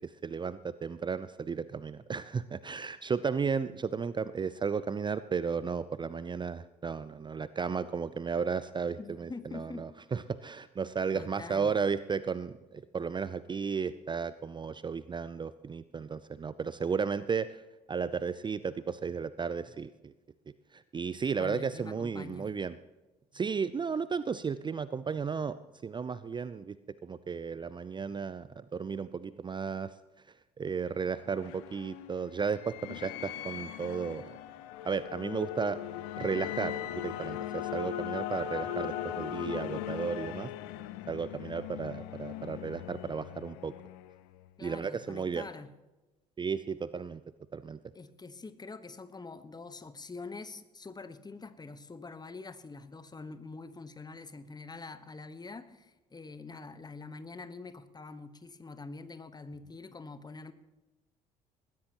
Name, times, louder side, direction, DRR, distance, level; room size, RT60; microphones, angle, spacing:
voice 1, 0.0-20.1 20.7-22.8 23.3-26.8 27.0-30.0 30.3-34.3 34.8-35.8 36.2-40.5 41.1-43.7 44.6-45.5 46.4-47.2 47.5-47.8, right 5 dB, 25° right, 16 dB, 0.5 m, -34 dB
voice 2, 9.0-9.9 11.1-11.7 21.4-22.5 44.6-45.7 47.9-60.5, left 4 dB, 20° left, 12 dB, 1.2 m, -45 dB
sound 1, 30.8-44.5, left 11 dB, 65° left, 0.8 m, -39 dB
21.0 x 15.5 x 3.0 m, 1.1 s
figure-of-eight pair, 55°, 20 cm